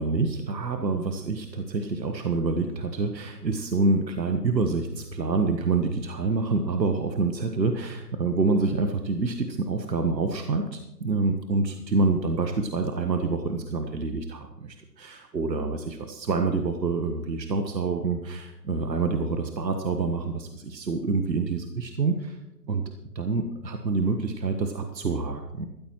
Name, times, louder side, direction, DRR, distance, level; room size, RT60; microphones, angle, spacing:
voice 1, 0.0-22.4 22.7-22.8 23.1-25.7, right 3 dB, 85° right, 6 dB, 1.3 m, -27 dB
16.0 x 14.0 x 3.1 m, 0.93 s
hypercardioid pair, 155°, 49 cm